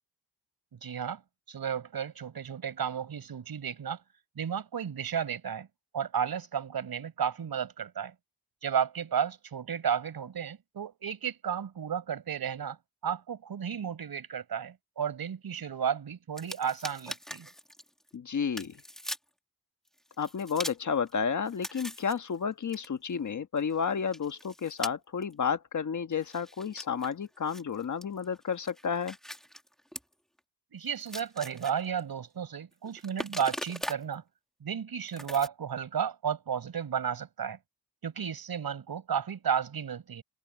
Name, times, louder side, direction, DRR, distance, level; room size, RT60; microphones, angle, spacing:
voice 1, 0.7-1.2 1.5-4.0 4.4-5.7 5.9-8.1 8.6-12.8 13.0-17.5 30.7-34.2 34.6-37.6 38.0-40.2, right 8 dB, 65° right, 5.9 m, -33 dB
sound 1, 16.4-18.1 18.6-19.2 19.9-21.1 21.5-23.8 24.1-24.9 25.2-25.3 26.1-30.1 30.4-30.5 30.9-32.0 32.7-34.1 35.1-35.5, equal, ahead, 1.7 m, -41 dB
voice 2, 18.1-18.8 20.2-29.2, left 6 dB, 50° left, 1.4 m, -31 dB
wide cardioid pair, 140°, 39 cm